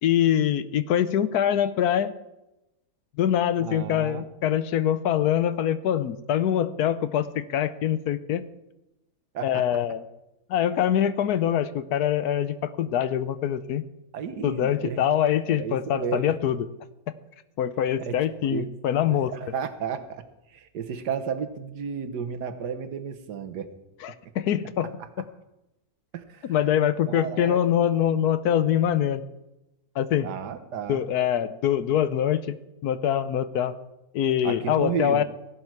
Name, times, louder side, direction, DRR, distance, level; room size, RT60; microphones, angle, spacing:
voice 1, 0.0-2.1 3.2-8.5 9.4-10.0 10.5-13.8 14.4-16.7 17.1-17.2 17.6-19.3 24.0-24.9 26.4-29.2 30.0-30.3 30.9-32.5 32.8-33.7 34.1-35.2, left 10 dB, 75° left, 13 dB, 1.2 m, -24 dB
voice 2, 3.6-4.2 9.3-9.6 14.1-15.0 15.5-16.3 18.0-18.2 18.5-18.7 19.3-20.2 20.5-23.7 26.1-26.5 27.1-27.6 30.2-31.0 34.4-35.2, right 7 dB, 80° right, 10 dB, 1.6 m, -32 dB
16.0 x 12.0 x 4.7 m, 0.94 s
omnidirectional pair, 1.7 m